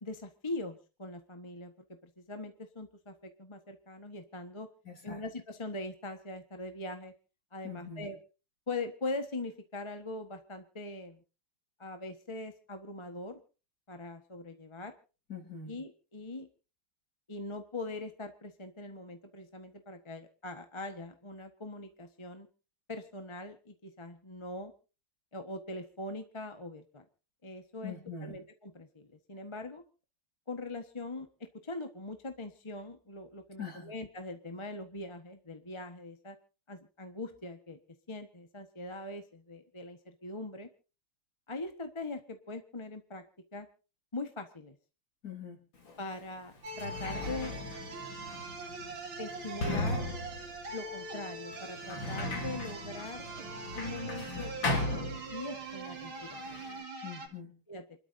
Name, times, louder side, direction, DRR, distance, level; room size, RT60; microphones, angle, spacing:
voice 1, 0.0-4.7 5.0-7.1 7.5-8.2 8.7-11.2 11.8-13.4 13.9-14.9 15.7-16.5 17.3-22.5 22.9-24.7 25.3-27.0 27.4-27.9 28.2-29.8 30.5-36.4 36.7-37.8 38.1-40.7 41.5-43.2 43.5-43.7 44.1-44.7 46.0-47.6 49.2-50.1 50.7-53.3 53.7-56.6 57.7-57.8, left 2 dB, 20° left, 6 dB, 1.0 m, -42 dB
voice 2, 4.9-5.2 7.6-8.1 15.3-15.7 27.8-28.4 33.6-33.9 45.2-45.6 57.0-57.5, left 6 dB, 45° left, 2 dB, 3.9 m, -43 dB
Sliding door, 45.9-46.0 46.6-55.7 56.0-56.8, left 2 dB, 60° left, 3.8 m, -37 dB
sound 1, 46.6-57.3, right 3 dB, 70° right, 3.0 m, -43 dB
28.5 x 12.5 x 2.7 m, 0.34 s
omnidirectional pair, 2.4 m